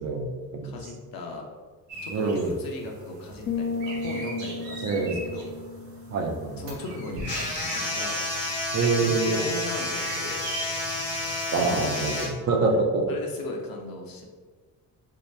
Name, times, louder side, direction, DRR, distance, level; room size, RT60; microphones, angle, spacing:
voice 1, 0.0-0.8 2.1-2.5 4.8-5.2 6.1-6.6 8.7-9.4 11.5-13.0, right 3 dB, 35° right, 2 dB, 0.5 m, -25 dB
voice 2, 0.6-1.5 2.0-5.5 6.6-8.2 9.0-10.4 11.5-11.9 12.7-12.8 13.1-14.2, left 2 dB, 45° left, 1 dB, 0.8 m, -37 dB
sound 1, 1.9-11.5, right 2 dB, 85° right, 1.0 m, -40 dB
sound 2, 3.5-7.2, left 3 dB, 30° left, 0.4 m, -34 dB
sound 3, 7.2-12.3, left 2 dB, 80° left, 1.1 m, -30 dB
3.0 x 2.2 x 3.3 m, 1.5 s
hypercardioid pair, 45°, 48 cm